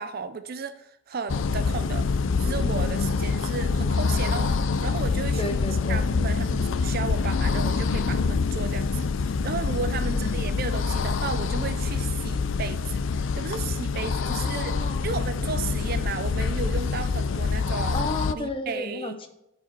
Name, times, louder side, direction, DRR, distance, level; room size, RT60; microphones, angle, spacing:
voice 1, 0.0-2.1 2.4-5.5 5.9-14.8 15.0-18.0 18.3-19.2, right 5 dB, 45° right, 0.4 m, -34 dB
sound 1, 1.3-18.3, left 4 dB, 65° left, 0.4 m, -26 dB
voice 2, 5.4-6.1 10.1-10.5 14.3-15.3 17.9-19.3, left 2 dB, 25° left, 0.8 m, -33 dB
13.5 x 4.9 x 4.5 m
head